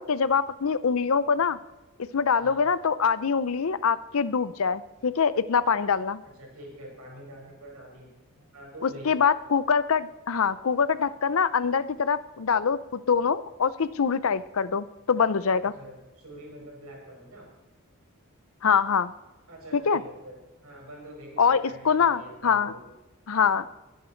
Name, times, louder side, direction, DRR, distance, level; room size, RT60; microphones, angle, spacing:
voice 1, 0.0-1.6 2.1-6.2 8.8-15.7 18.6-19.1 19.7-20.0 21.4-22.7 23.3-23.6, left 6 dB, 65° left, 16 dB, 0.6 m, -24 dB
voice 2, 6.2-8.1 8.5-9.2 15.6-17.5 19.5-22.8, right 1 dB, 75° right, -1 dB, 5.9 m, -45 dB
22.0 x 10.5 x 4.5 m, 1.1 s
head